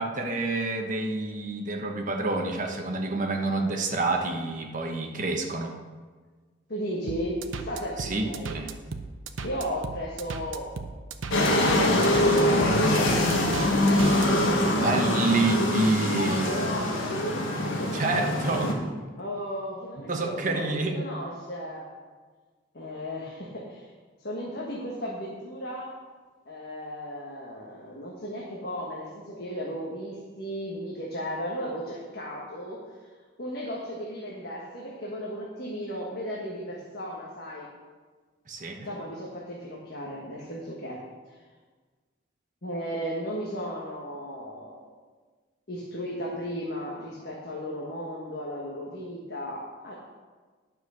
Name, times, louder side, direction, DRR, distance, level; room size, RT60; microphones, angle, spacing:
voice 1, 0.0-5.8 8.0-8.7 14.8-16.5 17.9-18.8 20.1-21.0 38.5-38.9, right 2 dB, 40° right, 2 dB, 1.1 m, -28 dB
voice 2, 6.7-8.6 9.4-10.7 11.5-14.2 16.3-17.5 19.2-21.9 22.7-23.9 24.2-25.9 26.5-32.8 33.4-37.7 38.8-41.3 42.6-44.9 45.7-49.9, equal, 50° left, -4 dB, 1.5 m, -35 dB
sound 1, 7.1-14.3, right 4 dB, 75° right, 0.7 m, -36 dB
sound 2, 11.3-18.7, left 1 dB, 80° left, 1.6 m, -24 dB
10.0 x 6.3 x 6.4 m, 1.4 s
head